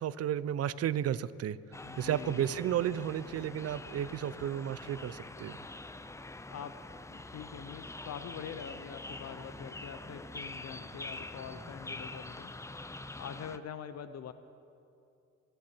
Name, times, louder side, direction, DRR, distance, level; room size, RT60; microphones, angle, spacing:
voice 1, 0.0-1.6 2.0-5.6, right 10 dB, 55° right, 17 dB, 0.6 m, -33 dB
sound 1, 1.7-13.6, left 2 dB, 10° left, 0.5 m, -45 dB
voice 2, 1.8-2.7 6.5-6.7 7.1-12.5 13.2-14.3, left 8 dB, 60° left, 11 dB, 0.7 m, -44 dB
27.0 x 10.5 x 4.4 m, 2.5 s
cardioid pair, 90°, 30 cm